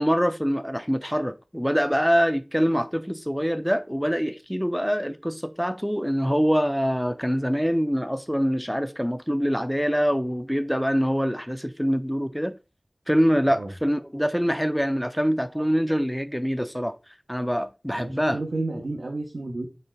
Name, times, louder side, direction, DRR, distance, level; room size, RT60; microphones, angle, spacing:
voice 1, 0.0-12.6 13.1-17.0 17.3-18.4, equal, ahead, 0.5 m, -24 dB
voice 2, 18.0-19.7, right 2 dB, 85° right, 0.8 m, -31 dB
5.0 x 4.2 x 2.3 m
wide cardioid pair, 40°, 0 cm